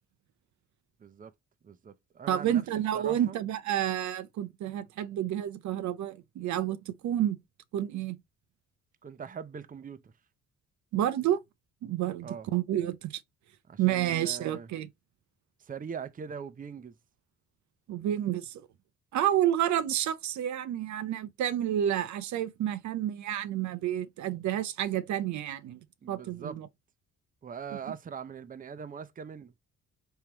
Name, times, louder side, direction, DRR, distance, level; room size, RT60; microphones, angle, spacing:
voice 1, 1.0-1.3 1.6-2.6 2.9-3.4 9.0-10.1 12.2-12.5 13.7-14.7 15.6-16.9 26.0-26.6 27.4-29.5, right 6 dB, 30° right, 0.6 m, -41 dB
voice 2, 2.3-7.4 7.7-8.2 10.9-11.4 11.8-13.2 13.8-14.9 17.9-18.7 19.1-25.8 26.1-26.7, right 11 dB, 70° right, 0.6 m, -30 dB
4.4 x 3.7 x 2.9 m
cardioid pair, 90°, 30 cm